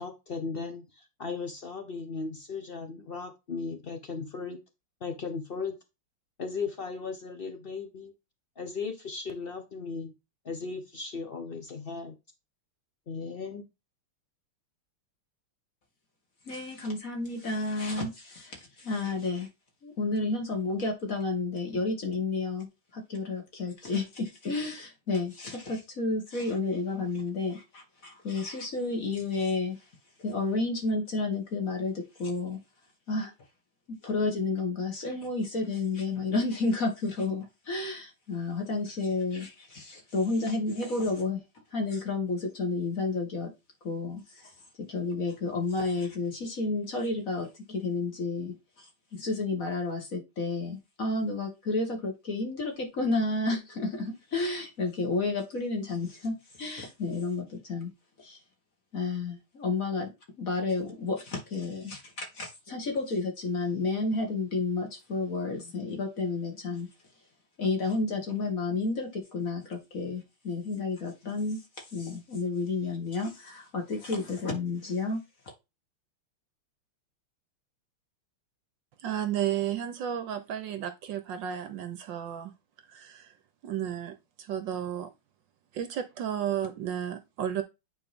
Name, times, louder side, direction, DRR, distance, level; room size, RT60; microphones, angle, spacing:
voice 1, 0.0-4.6 5.0-5.8 6.4-8.1 8.6-10.1 10.4-12.2 13.1-13.6, left 4 dB, 75° left, 0.5 m, -36 dB
voice 2, 16.5-19.5 19.8-22.7 22.9-29.8 30.2-32.6 33.1-33.3 34.0-41.4 41.7-43.5 43.8-44.5 44.8-57.9 58.2-58.4 58.9-60.1 60.4-66.9 67.6-75.2, left 3 dB, 40° left, 2.4 m, -31 dB
voice 3, 79.0-82.5 82.9-83.3 83.6-85.1 85.7-87.6, right 10 dB, 70° right, 1.3 m, -33 dB
9.1 x 4.3 x 3.5 m
omnidirectional pair, 2.4 m